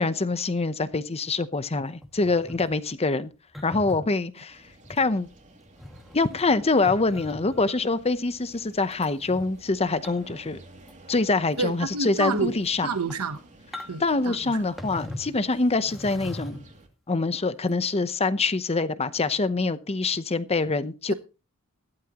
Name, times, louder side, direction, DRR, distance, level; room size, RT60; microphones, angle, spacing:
voice 1, 0.0-3.3 3.6-4.6 4.9-5.3 6.1-10.6 11.1-12.9 14.0-16.6 17.1-21.1, left 3 dB, 30° left, 0.8 m, -25 dB
sound 1, 2.0-2.7 3.5-4.0 4.8-5.0 5.6-7.7 8.9-9.5 10.0-10.4 10.7-11.1 11.5-11.6 12.1-12.4 13.0-13.4 13.7-14.2 14.8-15.4 15.8-16.8 17.7-17.8, left 1 dB, ahead, 2.0 m, -40 dB
sound 2, 4.5-16.9, right 1 dB, 35° right, 2.7 m, -52 dB
voice 2, 11.6-12.6 12.8-13.4 13.9-14.6, right 4 dB, 85° right, 1.0 m, -29 dB
16.0 x 12.0 x 3.0 m
head